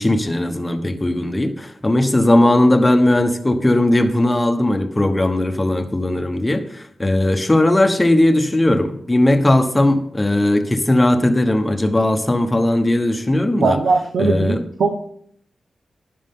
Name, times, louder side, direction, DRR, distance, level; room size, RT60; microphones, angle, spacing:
voice 1, 0.0-13.8 14.2-14.6, left 1 dB, 15° left, 6 dB, 1.2 m, -17 dB
voice 2, 13.6-15.1, right 4 dB, 75° right, 4 dB, 1.0 m, -20 dB
12.5 x 10.5 x 3.8 m, 0.64 s
wide cardioid pair, 120°, 0 cm